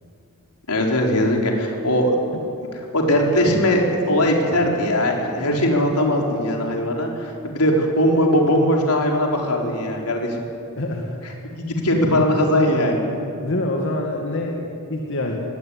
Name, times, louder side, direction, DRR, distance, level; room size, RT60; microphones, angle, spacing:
voice 1, 0.7-2.2 2.9-10.4 11.6-13.1, equal, 90° left, 1 dB, 4.1 m, -20 dB
voice 2, 10.8-11.3 13.4-15.4, left 1 dB, 60° left, 0 dB, 2.1 m, -26 dB
21.5 x 17.0 x 9.7 m, 2.6 s
head